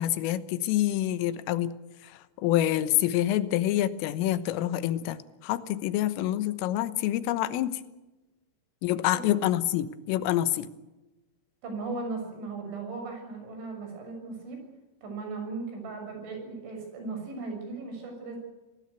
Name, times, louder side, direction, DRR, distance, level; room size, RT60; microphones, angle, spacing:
voice 1, 0.0-1.7 2.0-7.8 8.8-10.7, left 13 dB, 85° left, 13 dB, 3.7 m, -27 dB
voice 2, 11.6-14.6 15.0-18.4, right 3 dB, 65° right, 4 dB, 8.9 m, -37 dB
26.0 x 19.0 x 8.3 m, 1.1 s
omnidirectional pair, 5.7 m